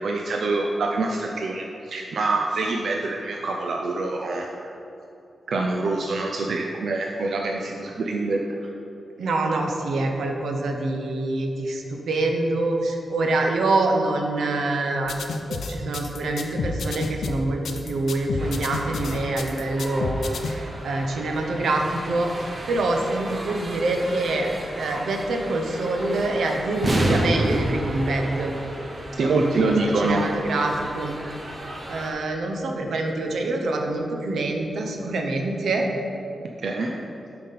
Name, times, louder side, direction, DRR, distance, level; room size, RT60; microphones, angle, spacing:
voice 1, 0.0-4.7 5.5-8.7 29.2-30.2 36.6-36.9, right 3 dB, 65° right, 1 dB, 0.5 m, -25 dB
voice 2, 9.2-15.1 15.5-22.3 22.7-24.5 24.8-28.5 29.2-31.2 31.9-35.9, right 2 dB, 90° right, 2 dB, 0.8 m, -25 dB
sound 1, 15.0-20.6, left 4 dB, 85° left, 0.5 m, -30 dB
sound 2, 18.4-32.1, right 1 dB, 30° right, 0.8 m, -31 dB
7.5 x 5.8 x 4.1 m, 2.8 s
wide cardioid pair, 160°, 0 cm